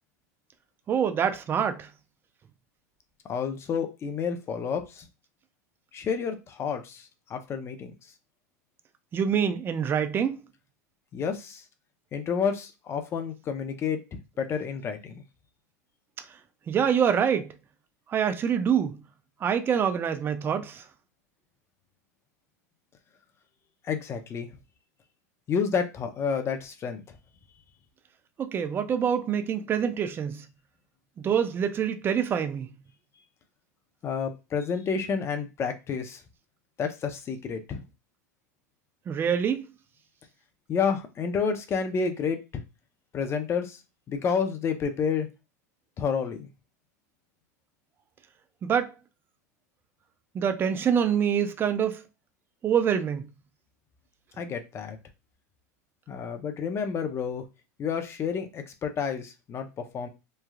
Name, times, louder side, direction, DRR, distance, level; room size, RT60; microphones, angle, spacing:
voice 1, 0.9-1.9 9.1-10.4 16.7-17.5 18.1-19.0 19.4-20.8 28.4-30.4 31.2-32.7 39.1-39.7 48.6-48.9 50.3-52.0 52.6-53.2, right 8 dB, 25° right, 0.4 m, -25 dB
voice 2, 3.3-5.1 5.9-7.9 11.1-11.6 12.1-14.0 14.4-15.1 23.8-24.5 25.5-27.0 34.0-36.2 36.8-37.8 40.7-42.6 43.1-43.8 44.1-45.3 46.0-46.5 54.4-55.0 56.1-57.4 57.8-60.1, left 6 dB, 30° left, 0.5 m, -30 dB
3.2 x 2.2 x 2.2 m
hypercardioid pair, 100°, 9 cm